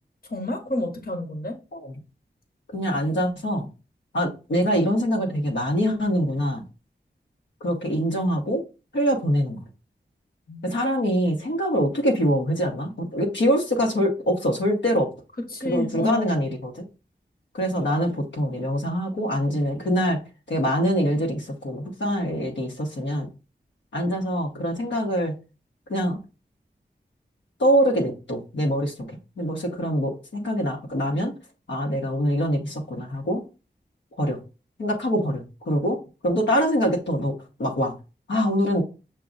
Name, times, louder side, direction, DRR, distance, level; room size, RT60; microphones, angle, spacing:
voice 1, 0.3-1.6 10.5-10.6 15.5-16.4, left 1 dB, 55° left, 3 dB, 1.1 m, -29 dB
voice 2, 2.7-3.7 4.1-6.6 7.6-8.6 8.9-9.7 10.6-15.1 15.6-16.8 17.5-20.2 20.5-23.3 23.9-25.3 25.9-26.2 27.6-31.3 31.7-33.4 34.2-34.4 34.8-36.0 36.2-37.3 37.6-37.9 38.3-38.8, equal, 90° left, 0 dB, 1.0 m, -24 dB
6.0 x 2.3 x 3.8 m, 0.31 s
wide cardioid pair, 60°, 18 cm